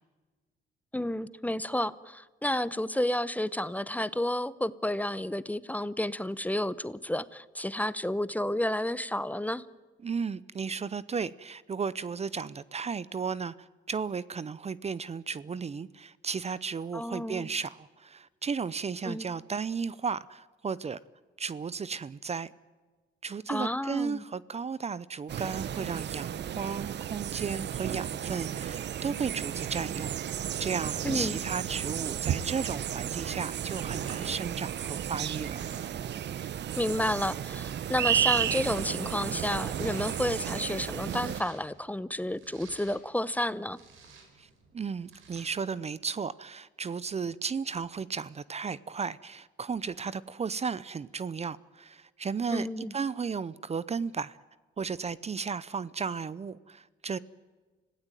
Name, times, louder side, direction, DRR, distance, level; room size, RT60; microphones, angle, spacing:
voice 1, 0.9-9.6 16.9-17.5 19.0-19.3 23.5-24.2 31.0-31.4 36.8-43.8 52.5-52.9, left 1 dB, 10° left, 0.8 m, -31 dB
voice 2, 10.0-21.0 21.4-22.5 23.2-30.1 30.6-35.6 44.4-44.5 44.7-54.4 54.8-57.2, right 5 dB, 35° right, 0.7 m, -34 dB
sound 1, 25.3-41.4, right 10 dB, 60° right, 0.9 m, -33 dB
Domestic sounds home sounds, 32.6-45.8, right 4 dB, 85° right, 5.2 m, -54 dB
26.0 x 17.0 x 9.1 m
cardioid pair, 90°, 20 cm